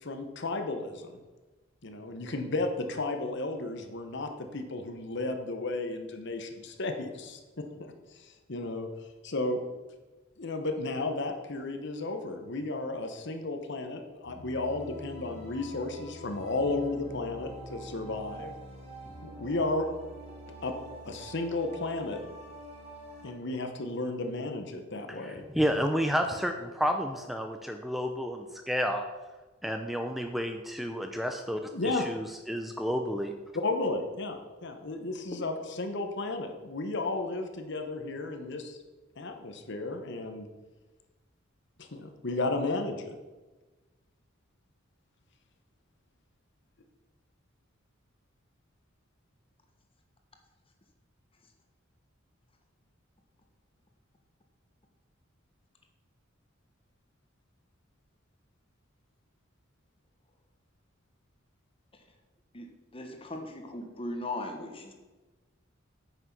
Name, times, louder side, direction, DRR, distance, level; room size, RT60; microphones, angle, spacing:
voice 1, 0.0-1.2 1.8-7.9 8.2-8.9 9.2-9.6 10.4-18.5 19.2-19.9 20.6-20.7 21.0-22.2 23.2-25.4 31.7-32.1 33.5-38.8 39.2-40.5 41.8-43.2, left 2 dB, 60° left, 6 dB, 1.1 m, -33 dB
sound 1, 14.2-23.3, right 1 dB, 35° right, 2.4 m, -46 dB
voice 2, 25.2-29.0 29.6-33.3, equal, ahead, 5 dB, 0.5 m, -31 dB
voice 3, 62.9-64.9, left 2 dB, 30° left, 4 dB, 1.4 m, -38 dB
9.1 x 6.4 x 6.0 m, 1.2 s
head